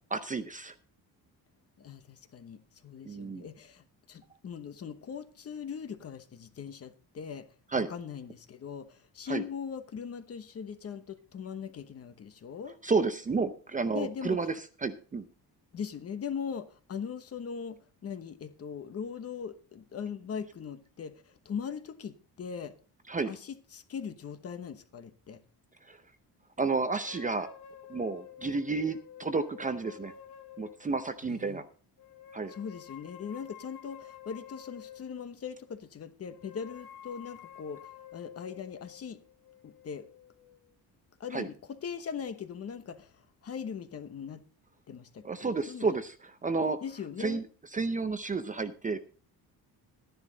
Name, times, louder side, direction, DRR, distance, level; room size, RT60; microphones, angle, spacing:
voice 1, 0.1-0.7 3.1-3.5 7.7-7.9 9.3-9.4 12.8-14.5 14.8-15.2 23.1-23.3 25.9-26.0 26.6-27.5 27.9-30.1 30.6-31.7 32.3-32.5 41.3-41.5 45.2-46.1 46.4-46.8 47.2-47.4 47.7-49.0, right 4 dB, 20° right, 0.6 m, -31 dB
voice 2, 1.8-7.5 7.7-12.8 13.9-14.5 15.7-22.7 23.2-25.4 31.2-31.6 32.5-39.2 39.6-40.1 41.2-44.4 44.9-45.9 46.8-47.4, left 7 dB, 40° left, 1.1 m, -40 dB
sound 1, 27.1-31.2 32.0-35.4 36.3-40.6, left 9 dB, 85° left, 1.6 m, -50 dB
12.0 x 10.5 x 3.9 m
cardioid pair, 155°, 38 cm